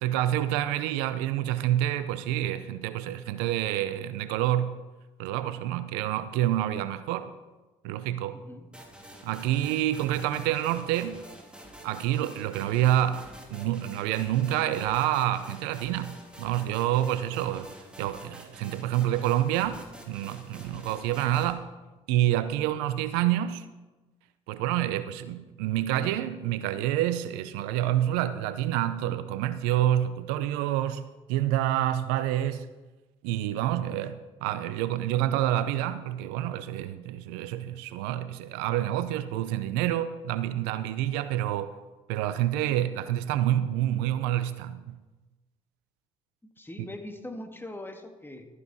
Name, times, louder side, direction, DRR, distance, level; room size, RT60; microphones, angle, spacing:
voice 1, 0.0-4.8 5.2-7.3 7.8-8.4 9.2-11.2 11.8-17.7 18.0-21.6 22.1-23.7 24.5-32.7 33.2-41.7 42.1-45.0, right 12 dB, 80° right, 0.6 m, -28 dB
voice 2, 8.3-8.7 46.6-48.5, left 1 dB, 15° left, 1.8 m, -41 dB
sound 1, 8.7-21.5, right 1 dB, 5° right, 3.0 m, -48 dB
13.0 x 9.8 x 4.2 m
hypercardioid pair, 55°, 16 cm